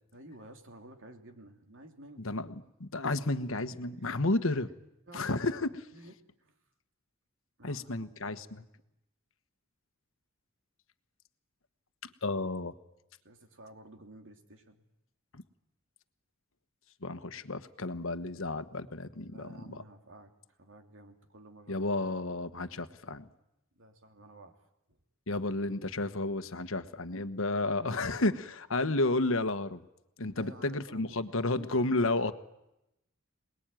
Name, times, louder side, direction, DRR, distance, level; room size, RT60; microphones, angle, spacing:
voice 1, 0.1-2.3 3.7-4.6 5.1-5.6 5.9-6.6 7.6-8.6 13.2-14.8 19.3-21.8 23.7-25.0 30.3-32.3, right 1 dB, 65° right, 5 dB, 3.0 m, -53 dB
voice 2, 2.2-4.7 5.1-5.7 7.6-8.6 12.2-12.7 15.3-15.4 17.0-19.5 21.7-23.3 25.3-29.8 30.2-32.3, left 2 dB, 65° left, 10 dB, 1.3 m, -32 dB
27.5 x 20.5 x 9.1 m, 0.88 s
head